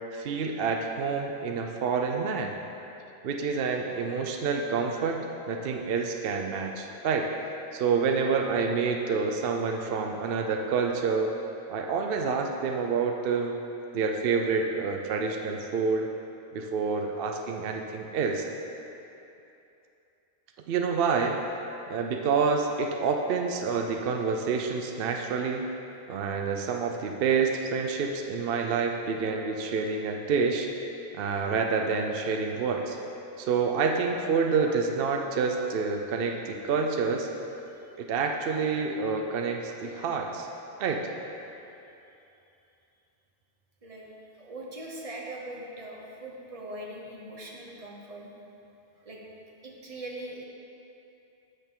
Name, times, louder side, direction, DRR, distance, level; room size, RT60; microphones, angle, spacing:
voice 1, 0.1-2.5 3.2-5.2 5.5-7.3 7.7-11.3 11.7-13.5 13.9-16.1 16.5-18.5 20.7-21.4 21.9-25.7 26.1-30.7 31.1-33.0 33.4-37.3 38.0-40.5 40.8-41.1, right 5 dB, 60° right, 2 dB, 0.7 m, -28 dB
voice 2, 44.4-48.3 49.0-49.2 49.6-50.4, right 1 dB, 35° right, -2 dB, 0.9 m, -41 dB
8.1 x 6.5 x 3.7 m, 2.8 s
omnidirectional pair, 1.2 m